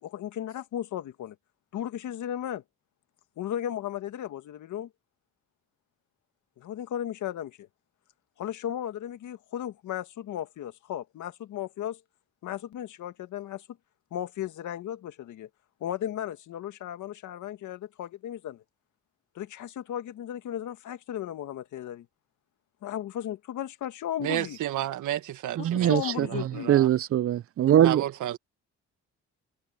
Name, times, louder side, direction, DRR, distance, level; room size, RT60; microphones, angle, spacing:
voice 1, 0.0-1.4 1.7-2.6 3.4-4.9 6.6-7.7 8.4-12.0 12.4-13.7 14.1-15.5 15.8-18.6 19.4-22.1 22.8-24.6 25.6-26.8, left 11 dB, 75° left, 1.9 m, -35 dB
voice 2, 24.2-26.9 27.8-28.4, right 13 dB, 80° right, 1.6 m, -32 dB
voice 3, 25.6-26.3 26.7-28.0, right 11 dB, 50° right, 0.5 m, -22 dB
open air
cardioid pair, 90°, 30 cm